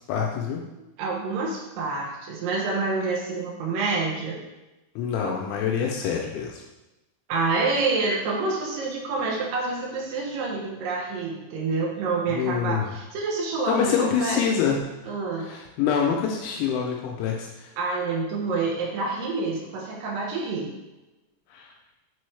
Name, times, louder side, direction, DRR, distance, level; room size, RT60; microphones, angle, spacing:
voice 1, 0.1-0.6 5.0-6.6 12.3-12.9 13.7-14.8 15.4-17.7 21.5-21.7, left 7 dB, 80° left, 0 dB, 2.9 m, -26 dB
voice 2, 1.0-4.4 5.2-5.3 7.3-14.4 15.0-15.5 17.8-20.7, right 3 dB, 80° right, -3 dB, 2.0 m, -27 dB
6.9 x 4.4 x 3.2 m, 1.0 s
omnidirectional pair, 5.6 m